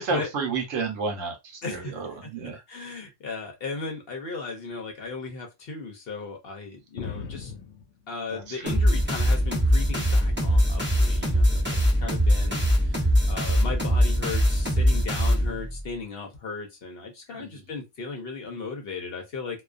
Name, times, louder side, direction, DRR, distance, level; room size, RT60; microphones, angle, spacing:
voice 1, 0.0-2.6 8.3-8.8 12.3-12.4 17.3-17.6, right 4 dB, 75° right, 1.2 m, -32 dB
voice 2, 1.6-2.0 2.7-7.5 8.1-19.6, left 4 dB, 55° left, 0.8 m, -36 dB
sound 1, 7.0-9.2 9.6-10.5 11.4-11.7 12.7-12.9, left 6 dB, 80° left, 1.0 m, -42 dB
sound 2, 8.7-15.8, equal, 10° right, 0.6 m, -22 dB
2.3 x 2.3 x 2.4 m
omnidirectional pair, 1.3 m